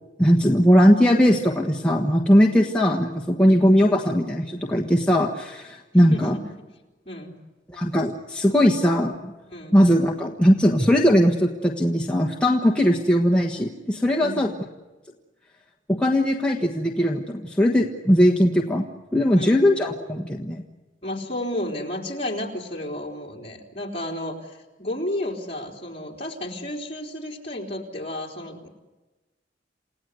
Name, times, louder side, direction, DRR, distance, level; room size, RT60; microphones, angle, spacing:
voice 1, 0.2-6.4 7.7-9.3 9.7-14.5 15.9-18.8 19.1-20.6, equal, 5° left, -1 dB, 1.4 m, -19 dB
voice 2, 6.1-6.4 7.1-7.3 9.5-9.8 14.2-14.5 19.3-19.7 21.0-28.7, left 1 dB, 35° left, -1 dB, 3.9 m, -32 dB
29.0 x 17.0 x 8.2 m, 1.1 s
head